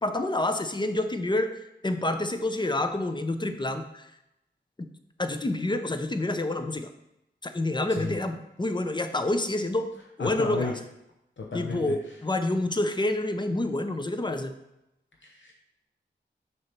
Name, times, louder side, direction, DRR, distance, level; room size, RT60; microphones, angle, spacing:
voice 1, 0.0-4.1 5.2-6.9 7.4-9.9 10.2-10.8 11.5-14.5, left 2 dB, 20° left, 8 dB, 0.6 m, -28 dB
voice 2, 10.2-10.7 11.4-12.0 15.2-15.5, left 4 dB, 70° left, -1 dB, 0.8 m, -33 dB
6.3 x 3.0 x 5.7 m, 0.87 s
cardioid pair, 55°, 20 cm